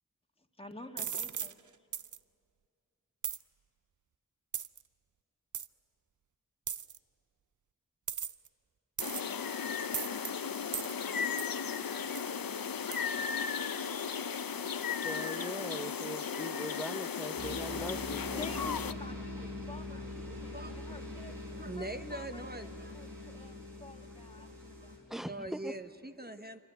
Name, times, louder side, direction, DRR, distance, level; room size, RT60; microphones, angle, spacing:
voice 1, 0.6-1.6 18.3-21.4 21.8-25.0, left 1 dB, 15° left, 4 dB, 1.8 m, -49 dB
sound 1, 1.0-1.5 1.9-2.2 3.2-3.4 4.5-4.8 5.5-5.7 6.7-7.0 8.1-8.5 9.0-9.4 9.9-10.3 10.7-10.9 11.4-11.6 12.2-12.3 12.9-13.0, right 7 dB, 60° right, 0.6 m, -37 dB
sound 2, 9.0-18.9, left 6 dB, 85° left, 0.7 m, -36 dB
voice 2, 15.0-18.5 25.1-25.7, equal, ahead, 13 dB, 0.8 m, -41 dB
sound 3, 17.4-25.0, left 1 dB, 80° right, 5.4 m, -43 dB
voice 3, 19.9-22.9 24.0-24.1 24.4-24.6 25.1-26.6, right 1 dB, 30° right, 9 dB, 1.0 m, -44 dB
26.0 x 24.5 x 9.1 m, 2.4 s
wide cardioid pair, 50°, 34 cm